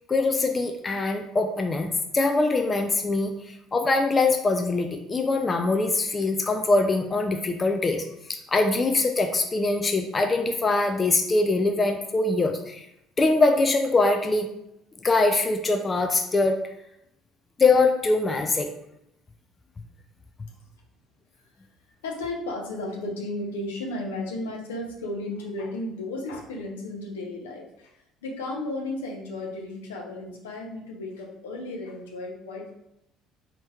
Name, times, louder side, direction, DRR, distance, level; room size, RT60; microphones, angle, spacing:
voice 1, 0.1-8.1 8.5-12.9 13.2-14.5 15.0-16.6 17.6-18.7, left 3 dB, 25° left, 5 dB, 0.3 m, -23 dB
voice 2, 22.0-32.7, left 2 dB, 75° left, -1 dB, 0.6 m, -34 dB
4.2 x 2.9 x 2.3 m, 0.80 s
figure-of-eight pair, 55°, 0 cm